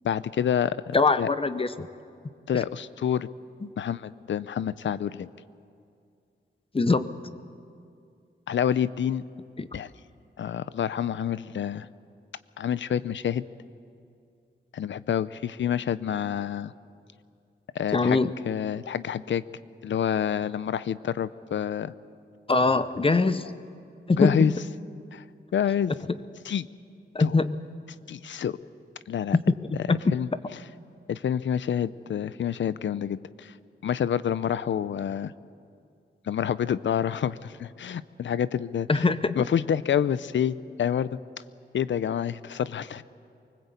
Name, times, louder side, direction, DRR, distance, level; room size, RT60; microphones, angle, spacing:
voice 1, 0.0-1.3 2.5-3.3 3.8-5.3 8.5-9.2 9.7-9.9 10.4-11.9 12.6-13.4 14.7-16.7 17.7-19.4 19.8-21.9 23.2-23.3 24.2-24.5 25.1-25.2 25.5-25.9 26.4-26.7 27.2-27.4 28.1-28.6 29.1-29.4 30.1-30.3 31.1-33.5 33.8-35.3 36.3-39.1 39.4-41.2 41.7-43.0, left 9 dB, 85° left, 17 dB, 0.6 m, -28 dB
voice 2, 0.9-1.9 2.5-2.6 3.6-3.7 6.7-7.1 9.6-9.7 17.9-18.3 22.5-23.5 24.1-24.5 27.1-27.6 29.3-29.6 29.9-30.1 38.9-39.4, left 3 dB, 30° left, 12 dB, 0.8 m, -22 dB
24.0 x 20.5 x 8.3 m, 2.4 s
wide cardioid pair, 95°, 19 cm